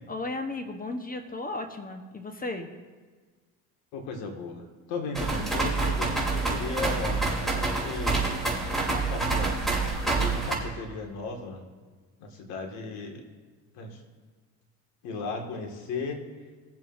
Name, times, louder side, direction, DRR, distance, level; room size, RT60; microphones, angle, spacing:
voice 1, 0.1-2.7, left 2 dB, 20° left, 6 dB, 1.1 m, -35 dB
voice 2, 3.9-8.3 8.8-9.6 10.0-11.7 12.2-13.2 13.7-14.0 15.0-16.2, left 3 dB, 80° left, 2 dB, 2.1 m, -36 dB
sound 1, 5.1-10.6, right 3 dB, ahead, 3.2 m, -27 dB
21.5 x 7.5 x 2.6 m, 1.4 s
supercardioid pair, 90°, 38 cm